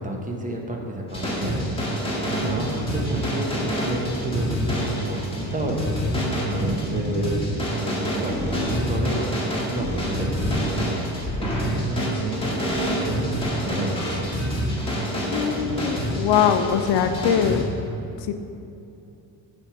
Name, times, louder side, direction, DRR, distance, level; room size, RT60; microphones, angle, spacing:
voice 1, 0.0-9.3 9.7-14.4, right 1 dB, 20° right, 1 dB, 0.9 m, -30 dB
sound 1, 1.1-17.6, equal, 15° left, 1.5 m, -27 dB
voice 2, 15.3-17.7 18.2-18.3, left 8 dB, 70° left, 8 dB, 0.6 m, -22 dB
7.0 x 3.5 x 6.1 m, 2.7 s
cardioid pair, 105°, 43 cm